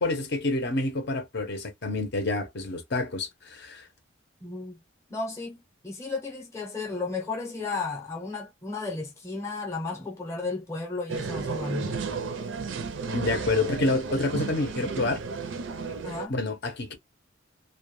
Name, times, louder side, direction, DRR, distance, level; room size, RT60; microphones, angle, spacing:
voice 1, 0.0-3.9 13.1-15.2 16.3-16.9, left 2 dB, 55° left, 0.6 m, -28 dB
voice 2, 4.4-4.8 5.1-5.6 5.8-12.0 16.0-16.4, left 3 dB, 15° left, 0.6 m, -33 dB
sound 1, 11.1-16.3, right 4 dB, 60° right, 0.4 m, -33 dB
2.2 x 2.1 x 3.0 m
head